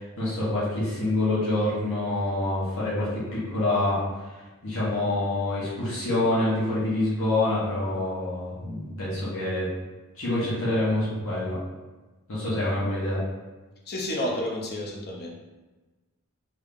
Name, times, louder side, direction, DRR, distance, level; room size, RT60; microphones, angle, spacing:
voice 1, 0.0-4.0 4.6-9.7 10.2-11.6 12.3-13.2, left 1 dB, 60° left, -9 dB, 1.4 m, -26 dB
voice 2, 13.9-15.3, left 1 dB, 45° left, -1 dB, 0.8 m, -30 dB
3.7 x 2.9 x 3.5 m, 1.2 s
head